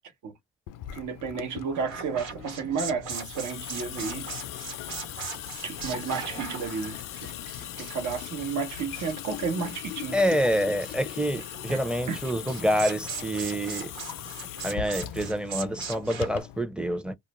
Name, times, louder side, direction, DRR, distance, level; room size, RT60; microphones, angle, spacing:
Water tap faucet / Sink (filling or washing) / Drip, 0.7-16.6, left 13 dB, 70° left, 0.5 m, -39 dB
voice 1, 0.9-4.3 5.6-7.3 7.8-10.2 11.7-11.8 12.1-12.2, right 5 dB, 60° right, 0.9 m, -32 dB
sound 1, 1.7-16.4, right 5 dB, 80° right, 1.2 m, -40 dB
voice 2, 10.1-13.9 14.6-17.1, equal, 5° right, 0.6 m, -27 dB
2.4 x 2.1 x 2.9 m
supercardioid pair, 65°, 33 cm